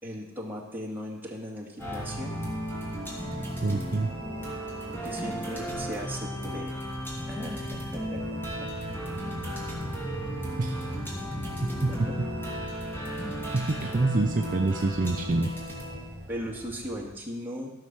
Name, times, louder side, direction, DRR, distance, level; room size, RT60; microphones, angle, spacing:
voice 1, 0.0-2.5 4.9-6.7 7.3-8.7 11.9-12.2 16.3-17.7, equal, 10° right, -3 dB, 2.1 m, -38 dB
sound 1, 1.8-17.1, equal, 10° left, 2.9 m, -35 dB
voice 2, 3.6-4.1 10.6-10.9 11.6-12.1 13.5-15.5, right 2 dB, 40° right, 4 dB, 0.6 m, -26 dB
15.0 x 6.4 x 6.1 m, 0.97 s
head